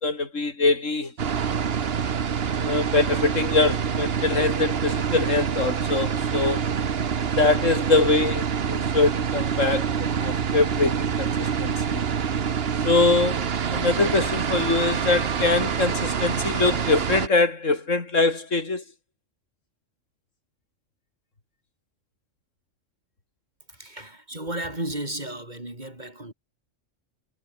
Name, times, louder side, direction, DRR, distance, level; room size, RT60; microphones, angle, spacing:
voice 1, 0.0-1.1 2.6-6.6 7.4-12.0 12.8-18.8, left 3 dB, 85° left, 3.7 m, -23 dB
sound 1, 1.2-17.3, right 7 dB, 55° right, 1.3 m, -26 dB
voice 2, 23.8-26.3, right 1 dB, 35° right, 5.1 m, -33 dB
omnidirectional pair, 1.3 m